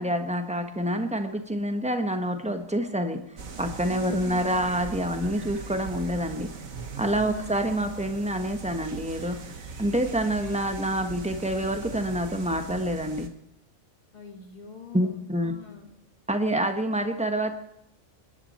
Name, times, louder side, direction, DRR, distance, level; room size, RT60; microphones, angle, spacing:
voice 1, 0.0-3.2 3.6-6.5 7.0-9.4 9.8-13.3 14.9-15.5 16.3-17.5, right 1 dB, 5° right, 6 dB, 1.2 m, -27 dB
sound 1, 3.4-13.3, right 4 dB, 70° right, 1.8 m, -40 dB
voice 2, 3.9-4.7 7.2-7.6 14.1-15.9, left 3 dB, 30° left, 3 dB, 2.4 m, -42 dB
27.0 x 11.0 x 4.4 m, 0.84 s
omnidirectional pair, 1.4 m